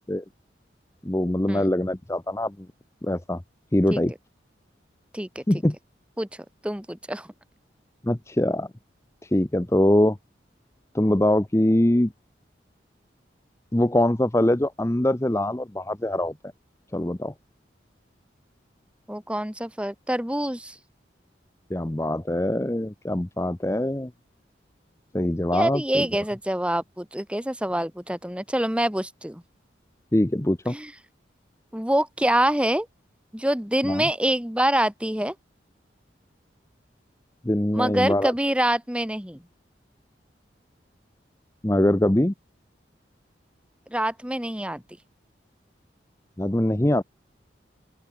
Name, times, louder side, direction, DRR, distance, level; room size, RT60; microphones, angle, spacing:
voice 1, 1.0-2.7 3.0-3.4 3.7-4.1 5.5-5.8 8.0-8.7 9.2-10.2 10.9-12.1 13.7-16.3 16.9-17.3 21.7-24.1 25.1-26.1 30.1-30.7 33.8-34.0 37.4-38.3 41.6-42.3 46.4-47.0, left 1 dB, 15° left, 0.7 m, -23 dB
voice 2, 6.6-7.3 19.1-20.8 25.5-29.4 30.7-30.9 31.7-32.9 33.3-35.3 37.7-39.4 43.9-44.8, right 1 dB, 5° right, 1.4 m, -25 dB
open air
head